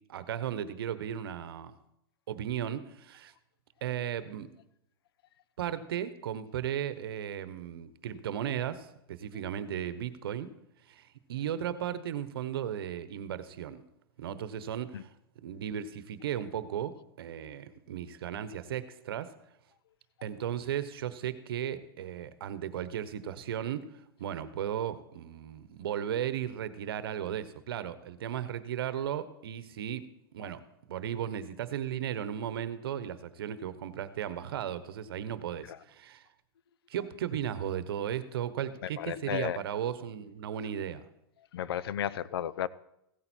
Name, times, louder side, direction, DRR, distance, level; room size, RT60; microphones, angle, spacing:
voice 1, 0.1-1.7 2.3-3.3 3.8-4.5 5.6-10.5 10.9-13.8 14.2-15.1 15.4-19.3 20.2-23.9 24.2-30.0 30.3-30.6 30.9-36.3 36.9-41.0, right 10 dB, 70° right, 14 dB, 1.0 m, -35 dB
voice 2, 38.8-39.6 41.5-42.7, left 10 dB, 75° left, 20 dB, 0.6 m, -34 dB
16.0 x 8.9 x 4.4 m, 0.83 s
hypercardioid pair, 150°, 13 cm